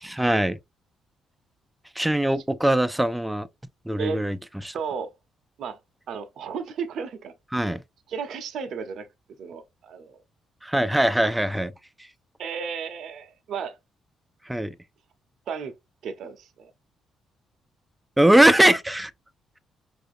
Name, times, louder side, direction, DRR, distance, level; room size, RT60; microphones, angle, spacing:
voice 1, 0.0-0.6 2.0-3.5 3.9-4.4 4.6-4.8 7.5-7.8 10.6-11.7 14.5-14.8 18.2-19.1, right 1 dB, 5° right, 0.4 m, -21 dB
voice 2, 4.7-5.1 5.6-5.8 6.1-7.3 8.1-9.1 9.4-10.2 11.2-11.3 12.4-13.8 15.5-15.7 16.0-16.7, right 6 dB, 70° right, 0.7 m, -33 dB
5.4 x 2.6 x 2.6 m
cardioid pair, 90°, 0 cm